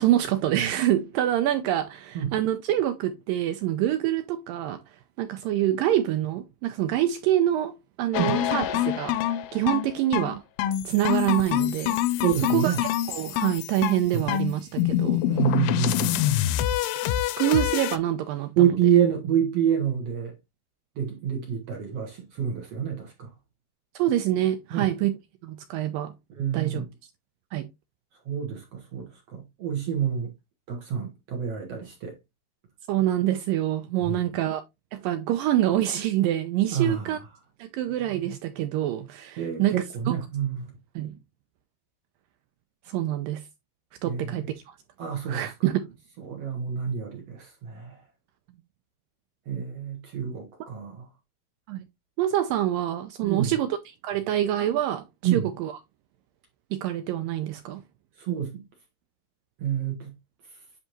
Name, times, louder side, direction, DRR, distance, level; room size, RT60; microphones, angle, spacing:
voice 1, 0.0-4.8 5.2-10.4 10.9-12.2 12.5-12.8 13.1-15.2 17.4-18.7 24.0-25.2 25.4-26.1 26.5-26.8 27.5-27.7 32.9-34.6 34.9-37.2 37.6-39.7 40.1-40.2 41.0-41.2 42.9-43.4 44.0-44.8 45.3-45.9 51.7-51.8 52.2-53.8 54.0-55.7 56.7-57.8, right 12 dB, 85° right, 2.0 m, -26 dB
sound 1, 8.1-18.0, left 12 dB, 80° left, 2.2 m, -26 dB
voice 2, 12.2-12.8 14.1-14.2 15.2-16.3 18.6-20.3 21.0-23.3 24.7-24.9 26.4-26.9 28.3-30.3 30.7-32.1 34.0-34.2 36.7-37.1 39.4-40.7 44.1-44.4 45.0-45.5 46.2-48.0 49.5-51.1 53.2-53.5 55.2-55.5 58.2-58.6 59.6-60.1, right 9 dB, 65° right, 1.6 m, -27 dB
10.0 x 3.5 x 3.0 m
omnidirectional pair, 4.6 m